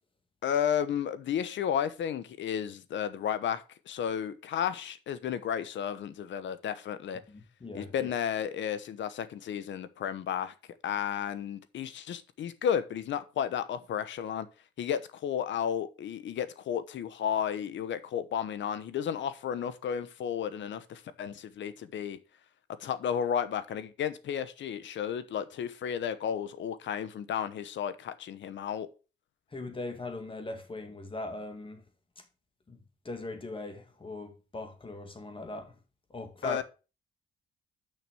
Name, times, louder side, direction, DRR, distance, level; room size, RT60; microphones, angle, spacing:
voice 1, 0.4-7.2 7.7-10.5 10.8-14.5 14.8-22.2 22.8-28.9 36.4-36.6, left 8 dB, 70° left, 1.0 m, -33 dB
voice 2, 7.3-8.1 29.5-31.8 32.2-32.3 32.7-35.8 36.1-36.6, left 2 dB, 25° left, 2.1 m, -40 dB
6.5 x 6.0 x 6.2 m
cardioid pair, 90°, 20 cm